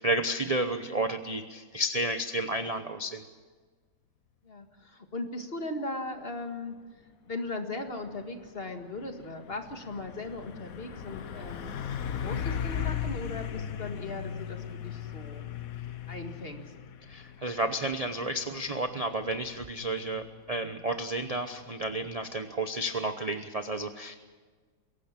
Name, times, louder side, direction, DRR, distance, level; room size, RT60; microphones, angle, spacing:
voice 1, 0.0-3.2 17.1-24.2, right 1 dB, 30° right, 8 dB, 0.6 m, -31 dB
voice 2, 4.4-6.8 7.3-11.7 12.2-15.5 16.1-16.6, left 2 dB, 35° left, 5 dB, 1.9 m, -38 dB
Truck, 7.9-22.2, left 8 dB, 55° left, 1.3 m, -38 dB
22.5 x 17.5 x 7.5 m, 1.5 s
omnidirectional pair, 1.9 m